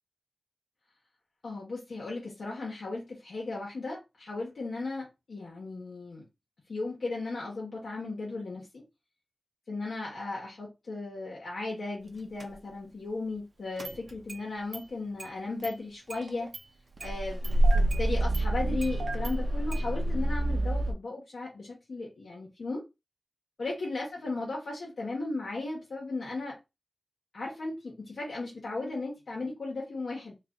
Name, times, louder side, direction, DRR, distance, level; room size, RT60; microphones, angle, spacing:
voice 1, 1.4-6.2 6.7-8.8 9.7-16.5 17.0-22.8 23.6-26.6 27.3-30.3, left 3 dB, 80° left, 1.3 m, -36 dB
Engine starting, 12.4-12.5 13.8-14.4 14.7-14.8 15.2-15.3 15.6-15.7 16.1-16.6 17.0-20.9, right 1 dB, 65° right, 0.8 m, -28 dB
3.2 x 2.5 x 3.8 m
wide cardioid pair, 75°, 0 cm